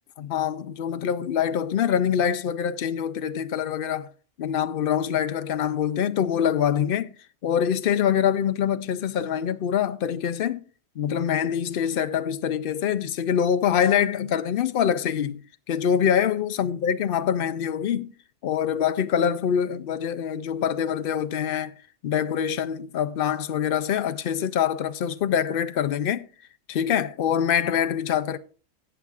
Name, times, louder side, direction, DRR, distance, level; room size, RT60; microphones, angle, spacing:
voice 1, 0.2-4.1 4.4-7.1 7.4-10.6 11.0-15.4 15.7-18.1 18.4-21.7 22.0-26.3 26.7-28.4, left 8 dB, 60° left, 0.6 m, -24 dB
17.5 x 6.8 x 2.4 m
omnidirectional pair, 1.3 m